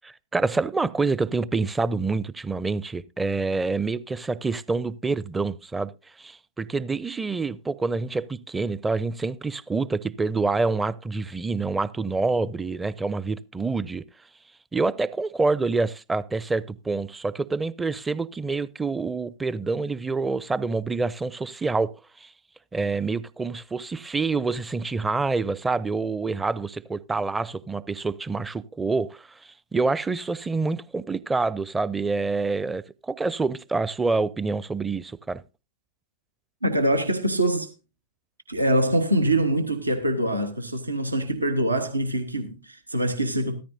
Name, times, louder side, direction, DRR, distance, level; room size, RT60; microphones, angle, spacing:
voice 1, 0.0-5.9 6.2-14.0 14.7-21.9 22.2-22.3 22.7-35.4, right 3 dB, 10° right, 0.5 m, -27 dB
voice 2, 36.6-37.7 38.5-43.6, right 1 dB, 80° right, 1.1 m, -24 dB
14.5 x 13.5 x 2.7 m
figure-of-eight pair, 90°, 0 cm